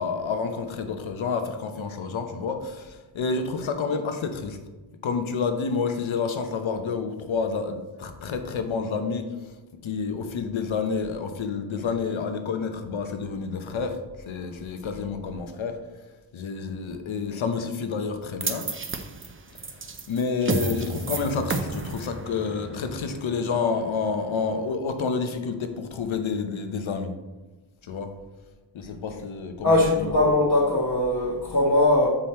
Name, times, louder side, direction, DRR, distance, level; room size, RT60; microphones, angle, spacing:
voice 1, 0.0-4.6 5.0-9.3 9.8-14.0 14.3-15.8 16.3-18.7 20.1-27.1 27.8-28.2 28.7-30.2, left 5 dB, 70° left, 7 dB, 0.9 m, -29 dB
sound 1, 18.4-24.7, right 3 dB, 25° right, 0.5 m, -32 dB
voice 2, 29.6-32.1, left 2 dB, 35° left, -6 dB, 1.2 m, -20 dB
7.7 x 5.0 x 4.3 m, 1.2 s
wide cardioid pair, 165°, 48 cm